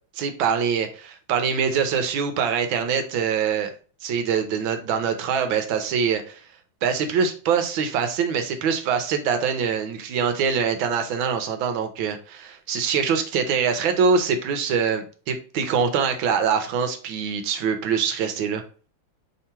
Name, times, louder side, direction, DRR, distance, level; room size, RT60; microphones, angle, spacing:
voice 1, 0.1-3.7 4.0-6.4 6.8-18.6, right 6 dB, 75° right, 8 dB, 1.3 m, -24 dB
3.6 x 2.8 x 4.4 m, 0.39 s
omnidirectional pair, 2.4 m